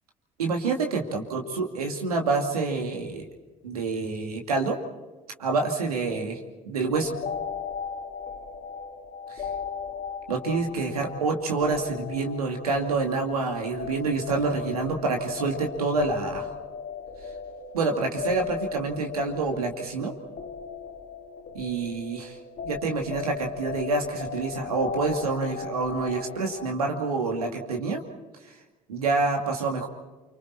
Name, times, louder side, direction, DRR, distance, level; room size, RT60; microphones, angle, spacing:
voice 1, 0.4-3.3 3.6-4.8 5.4-6.4 6.6-7.1 10.3-16.5 17.7-20.1 21.5-22.3 22.6-28.0 28.9-29.9, right 3 dB, 85° right, 3 dB, 2.5 m, -27 dB
sound 1, 6.9-26.7, left 6 dB, 50° left, 2.2 m, -37 dB
29.0 x 25.5 x 4.3 m, 1.2 s
hypercardioid pair, 55°, 19 cm